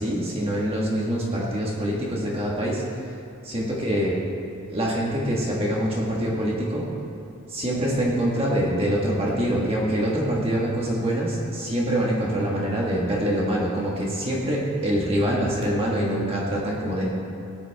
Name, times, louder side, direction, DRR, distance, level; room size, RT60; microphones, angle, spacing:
voice 1, 0.0-2.8 3.4-4.2 4.7-6.9 7.5-17.1, equal, 25° right, -4 dB, 1.6 m, -25 dB
17.5 x 9.4 x 3.5 m, 2.7 s
head